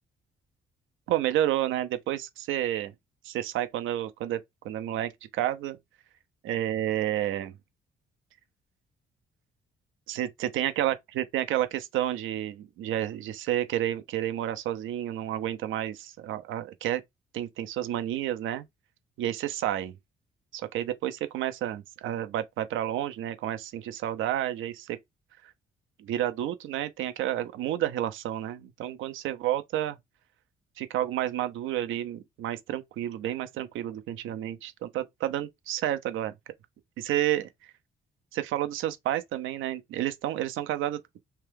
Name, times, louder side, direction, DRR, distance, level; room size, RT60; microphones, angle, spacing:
voice 1, 1.1-2.9 3.2-4.4 4.6-5.8 6.4-7.5 10.1-17.0 17.3-18.7 19.2-19.9 20.5-25.0 26.0-30.0 30.8-36.3 37.0-37.7 38.3-41.0, right 12 dB, 85° right, 0.6 m, -30 dB
2.8 x 2.2 x 3.3 m
cardioid pair, 90°, 20 cm